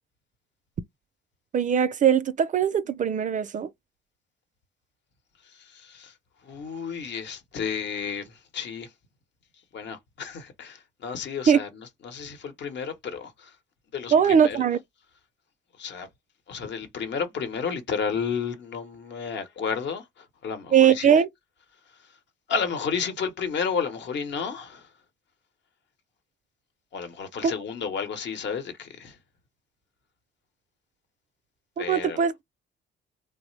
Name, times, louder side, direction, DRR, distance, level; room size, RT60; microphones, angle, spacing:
voice 1, 1.5-3.7 11.5-11.6 14.1-14.8 20.7-21.3 27.4-27.5 31.8-32.3, right 8 dB, 40° right, 0.4 m, -20 dB
voice 2, 5.4-8.9 9.5-13.6 13.9-14.6 15.7-16.1 16.5-21.2 21.7-22.2 22.5-25.0 26.9-29.2 31.8-32.2, left 6 dB, 65° left, 0.9 m, -32 dB
3.2 x 2.0 x 3.1 m
cardioid pair, 90°, 20 cm